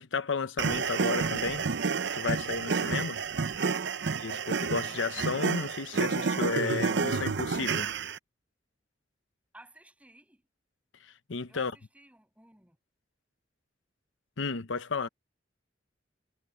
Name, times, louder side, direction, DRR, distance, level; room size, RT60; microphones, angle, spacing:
voice 1, 0.0-1.7 2.1-3.2 4.2-7.9 11.0-11.7 14.4-15.1, left 4 dB, 90° left, 0.8 m, -33 dB
sound 1, 0.6-8.2, right 5 dB, 65° right, 0.7 m, -30 dB
voice 2, 3.7-4.0 9.5-10.4 11.5-12.8, right 1 dB, 10° right, 7.4 m, -56 dB
head